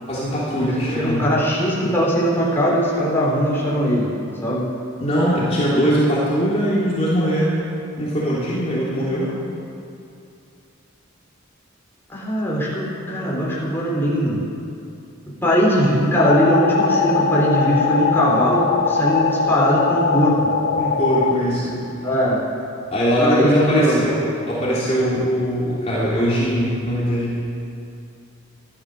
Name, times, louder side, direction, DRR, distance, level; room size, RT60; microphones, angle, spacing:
voice 1, 0.1-1.2 5.0-7.6 8.0-9.4 20.8-21.8 22.9-27.4, equal, 35° left, -8 dB, 3.1 m, -21 dB
voice 2, 0.9-4.1 4.4-4.6 12.1-14.4 15.4-20.4 22.0-22.4 23.2-24.1, equal, 10° left, -6 dB, 3.8 m, -20 dB
sound 1, 16.2-21.3, left 5 dB, 60° left, 1.2 m, -21 dB
15.0 x 12.0 x 6.7 m, 2.5 s
head